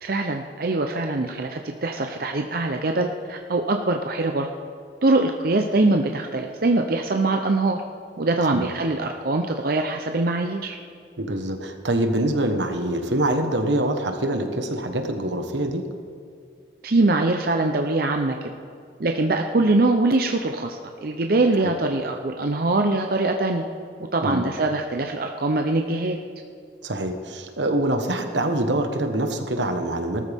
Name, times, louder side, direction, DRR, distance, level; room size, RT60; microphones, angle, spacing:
voice 1, 0.0-4.5 5.0-7.8 8.2-10.8 16.8-18.4 19.0-23.6 24.1-26.2, right 2 dB, 55° right, 4 dB, 0.7 m, -23 dB
voice 2, 11.2-15.8 21.6-21.7 24.2-24.5 26.8-30.3, right 1 dB, 85° right, 6 dB, 1.3 m, -25 dB
18.5 x 13.5 x 3.6 m, 2.3 s
head